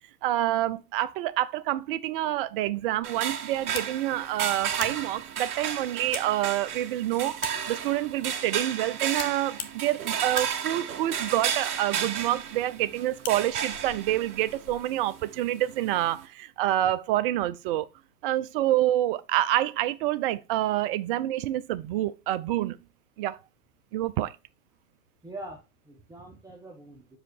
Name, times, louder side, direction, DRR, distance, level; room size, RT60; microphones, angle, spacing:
voice 1, 0.2-17.9 18.2-22.8 23.2-23.4 23.9-24.3, right 14 dB, 35° right, 0.6 m, -27 dB
sound 1, 3.0-16.3, right 8 dB, 60° right, 1.8 m, -33 dB
sound 2, 3.6-15.0, left 9 dB, 60° left, 1.3 m, -45 dB
voice 2, 25.2-27.2, right 1 dB, 5° right, 1.2 m, -43 dB
6.4 x 5.0 x 4.6 m
hypercardioid pair, 110°, 48 cm